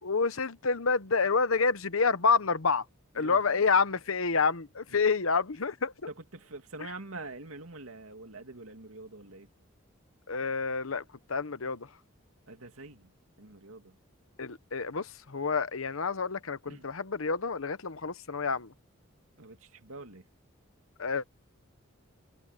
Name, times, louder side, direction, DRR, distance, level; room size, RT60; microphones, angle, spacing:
voice 1, 0.0-2.9 3.1-5.9 10.3-11.9 14.4-18.7 21.0-21.2, left 4 dB, 75° left, 1.0 m, -28 dB
voice 2, 3.2-3.5 6.1-9.5 12.5-13.1 13.4-14.0 16.7-16.9 19.4-20.3, right 2 dB, 80° right, 2.8 m, -45 dB
head